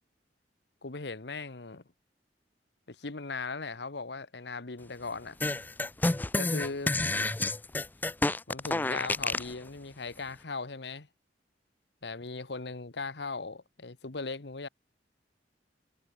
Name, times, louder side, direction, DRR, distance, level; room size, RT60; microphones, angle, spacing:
voice 1, 0.8-1.8 2.9-5.4 6.4-6.9 8.5-11.1 12.0-14.7, left 3 dB, 70° left, 1.3 m, -38 dB
sound 1, 5.4-9.5, left 2 dB, 10° left, 0.3 m, -29 dB
head